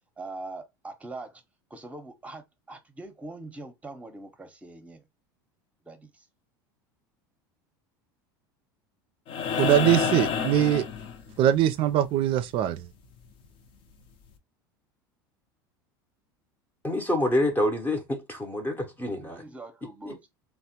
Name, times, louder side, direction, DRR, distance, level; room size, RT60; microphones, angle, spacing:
voice 1, 0.2-1.4 1.7-5.1 5.9-6.3 19.2-20.3, right 2 dB, 10° right, 0.8 m, -42 dB
sound 1, 9.3-11.6 13.4-13.5, left 6 dB, 50° left, 0.6 m, -28 dB
voice 2, 9.6-10.8 11.4-12.9, right 12 dB, 50° right, 0.4 m, -22 dB
voice 3, 16.8-19.4 20.1-20.2, left 1 dB, 15° left, 0.7 m, -27 dB
3.3 x 2.1 x 2.8 m
hypercardioid pair, 90°, 11 cm